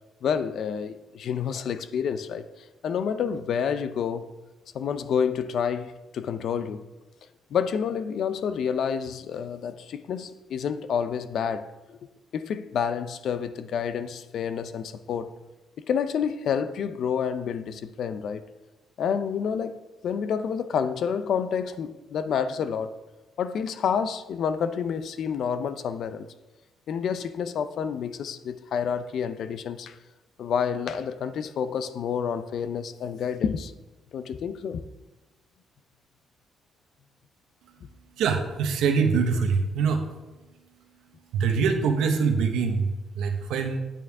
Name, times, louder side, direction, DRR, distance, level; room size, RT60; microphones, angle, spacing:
voice 1, 0.2-2.4 2.8-4.3 4.7-6.8 7.5-12.0 12.3-15.3 15.8-18.4 19.0-19.8 20.0-23.0 23.4-26.3 26.9-30.0 30.4-33.7 34.1-34.8, left 7 dB, 65° left, 0.5 m, -29 dB
voice 2, 38.2-40.1 41.3-43.8, right 5 dB, 85° right, 1.1 m, -24 dB
9.0 x 8.7 x 3.6 m
cardioid pair, 90°, 0 cm